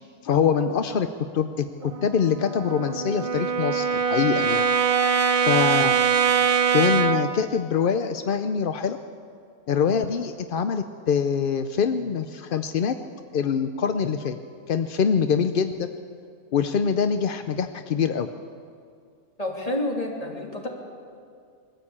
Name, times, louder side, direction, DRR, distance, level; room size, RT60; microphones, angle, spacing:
voice 1, 0.2-1.1 1.3-4.7 5.4-6.0 6.7-9.0 9.7-13.0 13.3-14.4 14.7-15.9 16.5-18.3, left 7 dB, 55° left, 9 dB, 0.6 m, -24 dB
Brass instrument, 1.8-7.4, right 7 dB, 40° right, 0.5 m, -23 dB
voice 2, 19.4-20.7, left 1 dB, 25° left, -1 dB, 3.0 m, -29 dB
21.5 x 14.5 x 8.6 m, 2.3 s
omnidirectional pair, 1.6 m